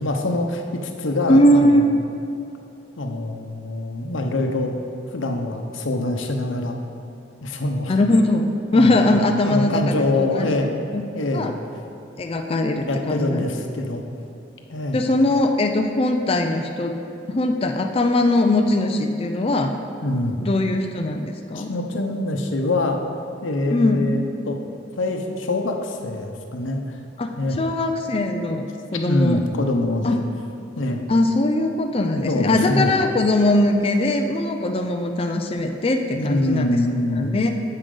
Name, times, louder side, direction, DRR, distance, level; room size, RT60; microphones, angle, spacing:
voice 1, 0.0-1.8 3.0-4.7 5.1-6.8 7.4-8.0 8.7-9.2 9.4-10.9 11.1-11.5 12.8-14.0 14.7-15.0 20.0-20.4 21.5-23.0 23.4-24.6 25.0-27.0 27.4-27.6 29.1-30.2 30.8-31.0 32.3-32.9 36.2-37.4, left 2 dB, 90° left, 4 dB, 0.8 m, -24 dB
voice 2, 1.3-2.0 7.9-10.0 10.3-10.5 10.9-11.0 11.3-11.5 12.2-13.5 14.9-17.0 17.3-19.7 20.4-21.7 23.7-24.1 27.2-28.7 28.9-29.4 30.0-30.2 31.1-36.8 37.2-37.5, left 1 dB, 30° left, 4 dB, 0.4 m, -20 dB
9.9 x 7.6 x 3.8 m, 2.8 s
head